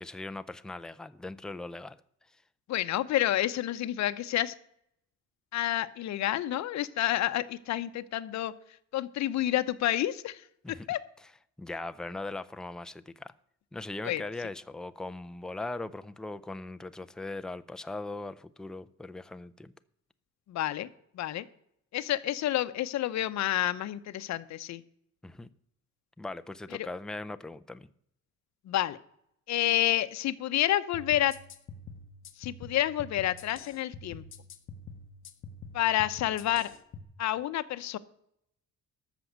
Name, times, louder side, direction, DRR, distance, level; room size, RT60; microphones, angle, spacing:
voice 1, 0.0-2.0 10.6-10.9 11.6-13.3 13.7-19.7 25.2-25.5 26.2-27.9, left 2 dB, ahead, 11 dB, 0.4 m, -39 dB
voice 2, 2.7-4.5 5.5-8.5 8.9-10.4 10.9-11.0 14.0-14.2 20.5-20.9 21.1-21.4 21.9-24.8 26.7-26.9 28.6-29.0 29.5-31.3 32.4-34.2 35.7-36.7 37.2-38.0, left 13 dB, 65° left, 13 dB, 0.8 m, -29 dB
sound 1, 30.9-37.0, left 3 dB, 45° left, 1.1 m, -46 dB
13.5 x 6.1 x 8.0 m, 0.72 s
cardioid pair, 160°, 30 cm